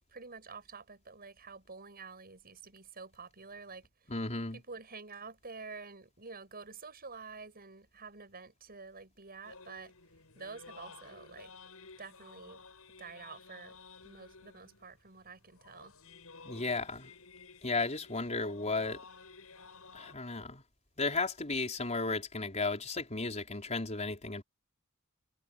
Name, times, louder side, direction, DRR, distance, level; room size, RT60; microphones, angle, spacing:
voice 1, 0.1-4.1 4.5-9.9 10.3-11.5 12.0-12.6 13.0-13.8 14.0-16.0, right 4 dB, 45° right, 7.9 m, -49 dB
voice 2, 4.1-4.6 16.4-17.1 17.6-19.0 19.9-20.6 21.0-24.4, left 3 dB, 35° left, 4.8 m, -34 dB
sound 1, 9.4-20.1, left 4 dB, 85° left, 7.5 m, -54 dB
head